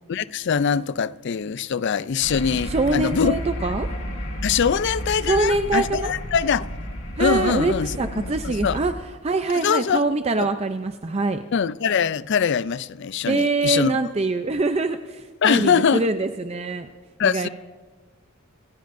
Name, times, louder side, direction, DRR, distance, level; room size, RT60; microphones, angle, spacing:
voice 1, 0.1-3.4 4.4-6.7 7.2-7.9 8.2-8.8 9.6-10.0 11.5-13.9 15.4-16.1 17.2-17.5, left 6 dB, 50° left, 0.4 m, -23 dB
sound 1, 2.2-8.9, equal, 70° left, 3.4 m, -32 dB
voice 2, 2.6-3.9 5.2-6.1 7.2-11.4 13.3-16.9 17.2-17.5, right 3 dB, 30° right, 0.5 m, -24 dB
27.5 x 15.5 x 2.6 m
head